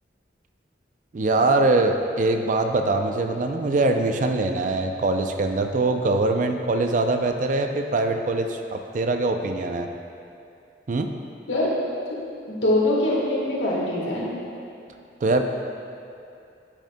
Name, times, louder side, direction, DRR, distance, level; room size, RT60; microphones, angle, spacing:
voice 1, 1.1-9.9 10.9-11.1 15.2-15.4, right 2 dB, 45° right, 5 dB, 0.4 m, -23 dB
voice 2, 12.5-14.3, left 1 dB, 85° left, -5 dB, 1.4 m, -23 dB
10.0 x 6.4 x 2.2 m, 2.6 s
head